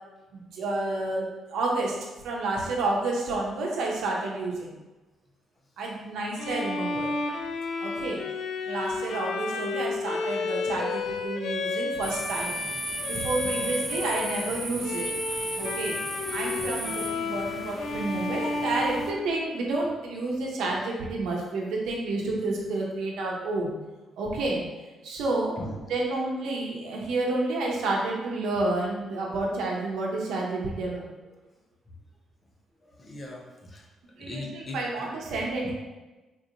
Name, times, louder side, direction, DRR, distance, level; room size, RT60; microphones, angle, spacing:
voice 1, 0.3-2.0 2.2-4.7 5.8-7.1 7.8-8.2 8.7-12.6 13.1-15.1 15.6-16.0 16.3-23.7 24.2-24.6 25.0-25.5 25.9-31.1 34.2-35.7, right 2 dB, 80° right, -2 dB, 0.7 m, -30 dB
Bowed string instrument, 6.4-19.8, left 3 dB, 70° left, 0.3 m, -32 dB
sound 1, 12.0-19.1, right 2 dB, 20° right, 0.5 m, -36 dB
voice 2, 32.8-33.9 34.2-34.8 35.6-35.7, left 1 dB, 35° left, 0 dB, 0.7 m, -39 dB
3.9 x 2.8 x 2.6 m, 1.2 s
cardioid pair, 90°, 0 cm